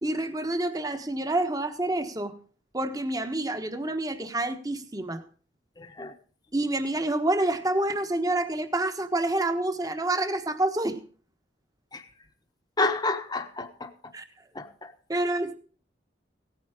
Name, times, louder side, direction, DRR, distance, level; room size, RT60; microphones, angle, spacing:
voice 1, 0.0-2.3 2.7-5.2 6.5-11.0 14.1-14.2 15.1-15.5, right 2 dB, 20° right, 7 dB, 1.2 m, -28 dB
voice 2, 5.8-6.1 11.9-12.1 12.8-13.9 14.5-14.9, left 3 dB, 25° left, 7 dB, 1.2 m, -30 dB
16.5 x 9.3 x 5.0 m, 0.41 s
head